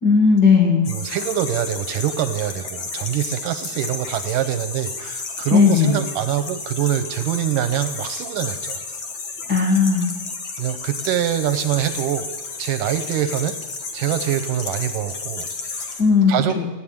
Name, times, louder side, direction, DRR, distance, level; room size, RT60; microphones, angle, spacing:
voice 1, 0.0-0.9 5.5-6.0 9.5-10.1 16.0-16.6, left 5 dB, 35° left, -1 dB, 1.6 m, -16 dB
sound 1, 0.8-16.0, left 4 dB, 55° left, 1.4 m, -32 dB
voice 2, 0.9-8.8 10.6-13.6 13.9-16.0 16.3-16.7, right 11 dB, 80° right, 10 dB, 2.0 m, -25 dB
16.5 x 9.4 x 8.7 m, 1.2 s
omnidirectional pair, 4.5 m